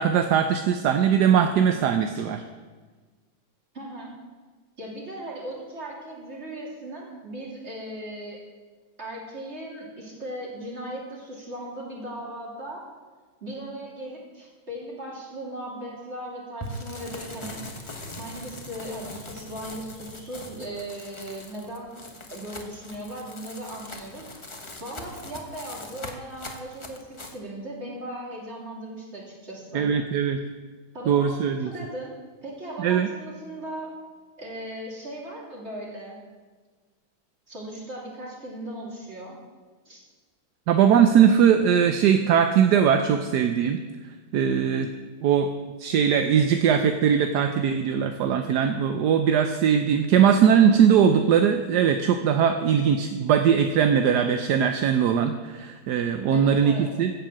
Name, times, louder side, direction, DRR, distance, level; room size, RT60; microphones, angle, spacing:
voice 1, 0.0-2.4 29.7-30.4 31.1-31.7 32.8-33.1 40.7-43.8 44.3-44.9 45.2-45.5 45.8-57.1, right 8 dB, 65° right, 7 dB, 1.1 m, -20 dB
voice 2, 3.7-4.1 4.8-8.4 9.0-12.8 13.4-17.6 18.2-24.3 24.8-29.9 30.9-32.1 32.4-33.9 34.4-36.2 37.5-39.4 39.8-40.0 56.3-56.9, right 1 dB, 35° right, -3 dB, 3.2 m, -38 dB
sound 1, 16.6-27.4, left 2 dB, 20° left, 0.9 m, -41 dB
15.5 x 5.7 x 7.4 m, 1.4 s
omnidirectional pair, 2.1 m